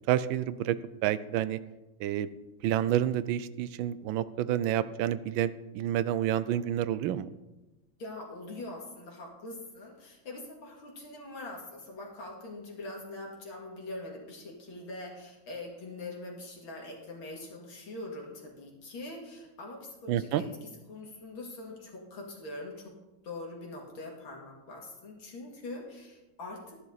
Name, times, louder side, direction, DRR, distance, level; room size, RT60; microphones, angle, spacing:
voice 1, 0.1-1.6 2.0-2.3 2.6-7.3 20.1-20.4, right 11 dB, 80° right, 15 dB, 1.3 m, -29 dB
voice 2, 8.0-20.5 20.9-23.0 23.2-26.8, left 2 dB, 80° left, -1 dB, 3.2 m, -43 dB
13.5 x 11.0 x 4.1 m, 1.1 s
omnidirectional pair, 2.1 m